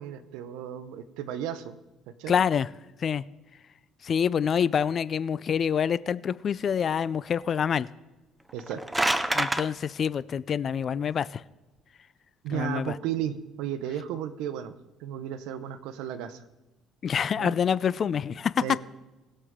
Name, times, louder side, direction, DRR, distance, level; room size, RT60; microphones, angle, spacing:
voice 1, 0.0-1.8 2.2-2.4 8.5-8.8 12.4-14.7 15.0-16.4 17.4-17.6 18.6-18.8, right 10 dB, 85° right, 12 dB, 0.8 m, -34 dB
voice 2, 2.3-2.7 3.0-3.2 4.0-7.9 9.3-11.4 12.5-13.0 17.0-18.8, left 7 dB, 45° left, 18 dB, 0.4 m, -26 dB
sound 1, 8.5-9.6, right 1 dB, 10° right, 0.6 m, -26 dB
20.0 x 6.7 x 3.7 m, 1.1 s
cardioid pair, 110°, 0 cm